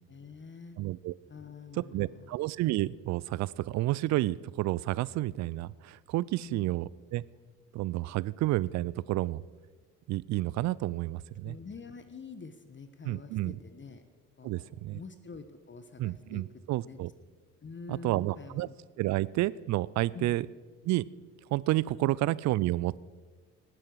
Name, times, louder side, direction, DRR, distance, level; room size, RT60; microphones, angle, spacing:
voice 1, 0.1-0.8 1.3-2.4 6.4-6.7 11.4-14.0 14.4-16.4 16.8-17.0 17.6-18.7 20.1-20.3 22.0-22.1, left 5 dB, 25° left, 10 dB, 1.1 m, -46 dB
voice 2, 0.8-1.1 1.9-7.2 7.7-9.4 10.1-11.6 13.1-13.6 14.4-15.0 16.0-17.1 17.9-18.7 19.0-20.5 20.8-21.1 21.5-23.0, right 16 dB, 40° right, 22 dB, 0.4 m, -30 dB
18.5 x 10.5 x 4.7 m, 1.5 s
figure-of-eight pair, 50°, 46 cm